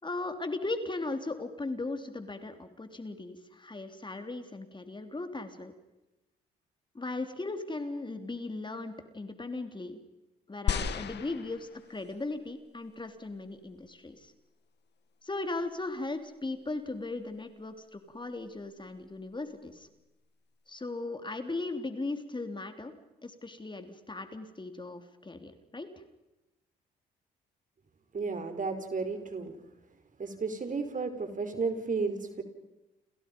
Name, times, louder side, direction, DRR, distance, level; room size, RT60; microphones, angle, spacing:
voice 1, 0.0-5.7 7.0-10.0 10.5-14.3 15.2-19.9 20.7-22.9 23.2-26.0, left 2 dB, 25° left, 7 dB, 3.5 m, -37 dB
sound 1, 10.7-12.2 12.9-13.0, left 7 dB, 60° left, 1.9 m, -33 dB
voice 2, 28.1-29.6 30.2-32.4, right 4 dB, 40° right, 8 dB, 4.9 m, -33 dB
30.0 x 29.0 x 5.5 m, 0.98 s
hypercardioid pair, 50°, 20 cm